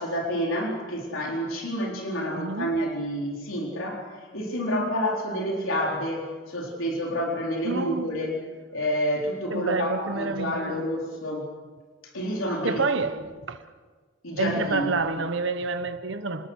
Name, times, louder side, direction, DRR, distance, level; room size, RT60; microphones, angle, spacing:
voice 1, 0.0-4.1 4.3-8.4 8.7-11.5 12.0-12.8 14.2-15.0, equal, 85° left, 4.1 m, -29 dB
voice 2, 2.3-2.7 7.6-8.1 9.5-10.8 12.6-13.2 13.5-13.6 14.4-16.5, right 3 dB, 65° right, 1.1 m, -28 dB
26.5 x 20.0 x 6.4 m
head